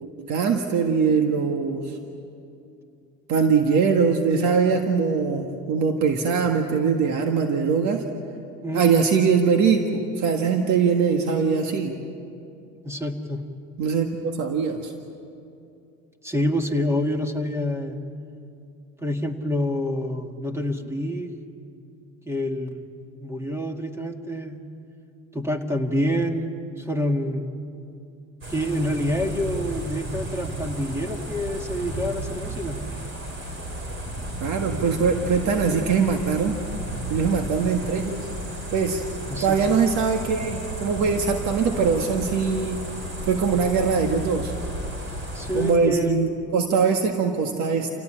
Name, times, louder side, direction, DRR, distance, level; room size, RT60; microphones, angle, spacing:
voice 1, 0.0-2.0 3.3-8.0 8.7-12.0 13.8-14.9 34.4-36.6 37.1-38.3 38.7-39.0 39.4-42.8 43.3-44.5 45.5-47.9, right 5 dB, 70° right, 4 dB, 1.8 m, -22 dB
voice 2, 12.8-13.4 16.2-18.0 19.0-21.3 22.3-22.9 23.2-24.6 25.3-27.5 28.5-32.8 39.3-39.6 45.3-46.2, equal, 10° right, 4 dB, 2.0 m, -27 dB
sound 1, 28.4-45.7, right 1 dB, 40° right, 4.7 m, -33 dB
28.5 x 17.5 x 8.9 m, 2.6 s
cardioid pair, 120°, 30 cm